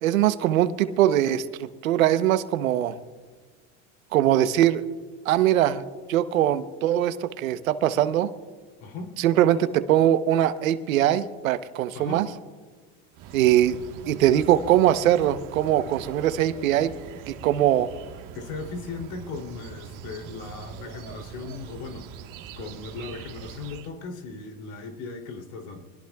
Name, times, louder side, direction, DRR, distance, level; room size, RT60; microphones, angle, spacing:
voice 1, 0.0-2.9 4.1-4.8 5.2-5.8 6.1-8.3 9.2-12.3 13.3-13.8 14.1-16.9 17.3-17.9, right 12 dB, 85° right, 12 dB, 1.0 m, -21 dB
voice 2, 8.8-9.2 11.9-12.3 18.3-22.1 22.6-25.8, left 4 dB, 65° left, 3 dB, 3.1 m, -37 dB
sound 1, 13.1-23.9, right 9 dB, 55° right, 1.5 m, -42 dB
24.5 x 20.5 x 2.4 m, 1.4 s
hypercardioid pair, 100°, 40 cm